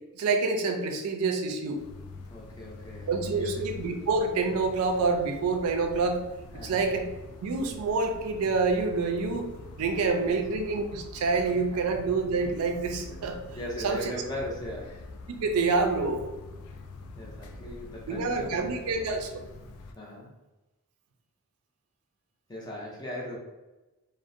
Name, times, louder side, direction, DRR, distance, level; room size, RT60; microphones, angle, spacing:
voice 1, 0.2-1.8 3.1-6.2 6.6-7.1 7.4-9.5 9.8-13.4 13.8-14.1 15.3-16.2 18.1-19.3, right 4 dB, 85° right, 5 dB, 0.4 m, -27 dB
sound 1, 1.7-19.9, left 3 dB, 90° left, 0.3 m, -45 dB
voice 2, 2.3-3.6 6.5-6.9 10.0-10.4 13.5-15.0 17.2-18.9 20.0-20.4 22.5-23.4, equal, 20° left, -3 dB, 0.4 m, -38 dB
2.4 x 2.0 x 2.5 m, 1.1 s
head